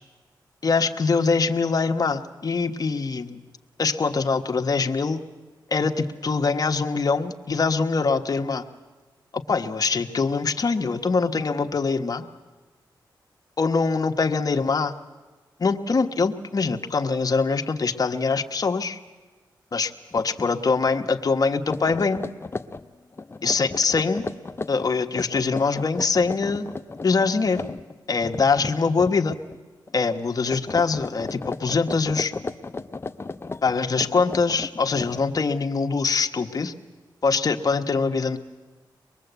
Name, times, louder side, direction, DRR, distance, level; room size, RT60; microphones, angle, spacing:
voice 1, 0.6-3.4 3.8-5.2 5.7-8.7 9.3-12.2 13.6-15.0 15.6-19.0 19.7-22.3 23.4-24.2 24.7-26.7 27.0-27.7 28.1-29.4 29.9-32.3 33.6-36.7 37.2-38.4, left 4 dB, 50° left, 5 dB, 1.3 m, -23 dB
sound 1, 20.1-20.5 20.8-21.0 21.5-29.6 29.9-30.2 30.5-35.6, left 3 dB, 30° left, 0.7 m, -35 dB
23.5 x 21.5 x 8.2 m, 1.3 s
cardioid pair, 80°, 8 cm